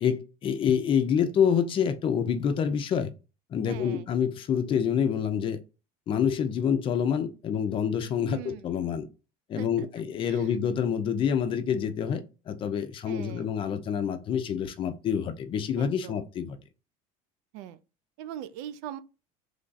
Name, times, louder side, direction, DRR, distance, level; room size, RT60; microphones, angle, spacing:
voice 1, 0.0-3.1 3.5-5.6 6.1-9.1 9.5-16.6, left 7 dB, 30° left, 0.4 m, -27 dB
voice 2, 3.7-4.0 8.3-8.7 9.6-9.9 10.2-10.6 13.1-13.5 15.8-16.2 17.5-17.8 18.2-19.0, right 11 dB, 85° right, 0.4 m, -41 dB
3.2 x 2.4 x 3.9 m
cardioid pair, 150°, 18 cm